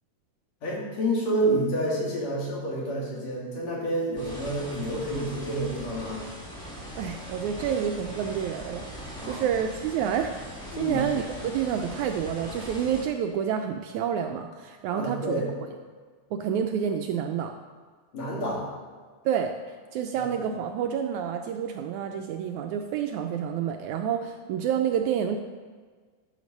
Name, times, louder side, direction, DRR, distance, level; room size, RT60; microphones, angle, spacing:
voice 1, 0.6-6.3 9.2-9.5 10.7-11.1 14.9-15.5 18.1-18.7 20.2-20.3, right 1 dB, 55° left, -4 dB, 3.5 m, -29 dB
sound 1, 4.1-13.0, equal, ahead, 2.1 m, -40 dB
voice 2, 7.0-15.4 16.3-17.5 19.3-25.4, right 8 dB, 80° right, 5 dB, 1.8 m, -29 dB
11.5 x 6.6 x 5.3 m, 1.5 s
omnidirectional pair, 3.7 m